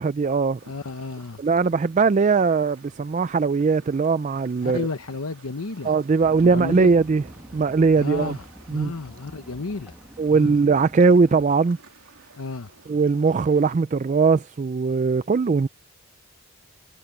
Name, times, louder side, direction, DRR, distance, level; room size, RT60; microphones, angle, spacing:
voice 1, 0.0-0.6 1.4-4.9 5.8-7.2 7.5-8.4 8.7-8.9 10.2-11.8 12.9-15.7, right 4 dB, 35° right, 0.3 m, -20 dB
voice 2, 0.6-1.4 4.6-5.9 6.4-6.9 8.0-10.0 10.3-10.6 12.4-12.7, left 3 dB, 75° left, 0.9 m, -32 dB
sound 1, 0.6-13.8, right 4 dB, 75° right, 2.8 m, -53 dB
sound 2, 6.2-11.4, equal, 5° right, 1.1 m, -45 dB
head